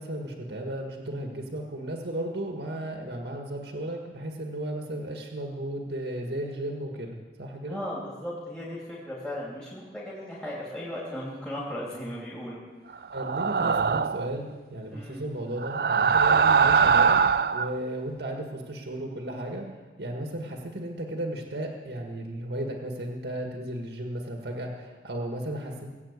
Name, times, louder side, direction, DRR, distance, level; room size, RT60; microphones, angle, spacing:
voice 1, 0.0-7.8 13.1-17.2 17.5-19.7 20.0-25.9, right 1 dB, 75° right, 2 dB, 1.7 m, -34 dB
voice 2, 7.7-12.6 14.9-15.3, equal, 5° left, -7 dB, 3.1 m, -36 dB
sound 1, 13.1-14.3 15.6-17.7, right 6 dB, 60° right, 0.4 m, -22 dB
20.0 x 8.4 x 8.2 m, 1.4 s
head